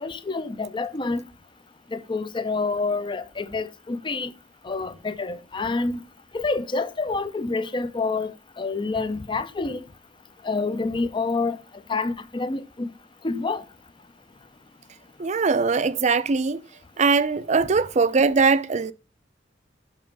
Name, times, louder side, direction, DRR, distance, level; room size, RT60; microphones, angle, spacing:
voice 1, 0.0-1.2 1.9-4.3 4.7-6.0 6.3-8.3 8.6-9.8 10.4-11.6 11.9-12.9 13.2-13.6, left 3 dB, 25° left, 0.5 m, -27 dB
voice 2, 15.2-16.6 17.0-18.9, right 4 dB, 40° right, 0.5 m, -21 dB
6.1 x 5.4 x 5.3 m
head